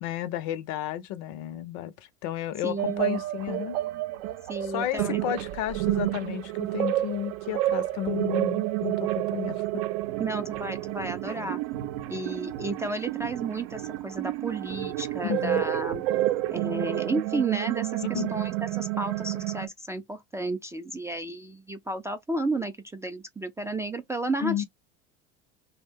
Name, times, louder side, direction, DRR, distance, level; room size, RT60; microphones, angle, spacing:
voice 1, 0.0-3.8 4.6-9.8 11.3-11.5 15.2-15.6 18.1-18.3 24.4-24.6, left 11 dB, 60° left, 0.6 m, -32 dB
voice 2, 2.6-3.2 4.5-5.2 10.2-11.6 12.1-16.0 16.5-24.6, right 2 dB, 10° right, 0.3 m, -32 dB
sound 1, 2.8-19.7, right 16 dB, 65° right, 0.6 m, -30 dB
2.6 x 2.1 x 3.5 m
hypercardioid pair, 85°, 34 cm